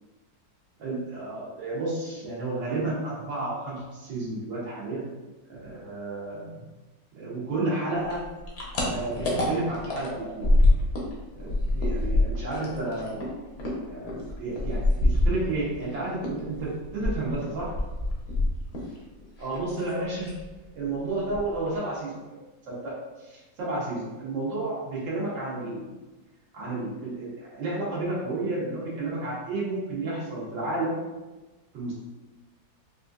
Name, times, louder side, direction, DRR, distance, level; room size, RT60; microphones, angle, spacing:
voice 1, 0.8-5.1 5.5-6.6 7.2-8.2 8.9-10.5 11.3-13.3 13.9-17.7 19.4-20.3 20.7-22.1 22.7-22.9 23.2-25.9 26.5-31.0 31.7-32.0, right 2 dB, 85° right, -7 dB, 1.7 m, -31 dB
sound 1, 8.1-11.1 11.4-15.9 16.2-19.0 19.2-19.9 20.2-20.5 20.8-20.9 21.2-21.7, left 2 dB, 60° left, 0.7 m, -25 dB
4.2 x 2.5 x 2.3 m, 1.1 s
omnidirectional pair, 2.0 m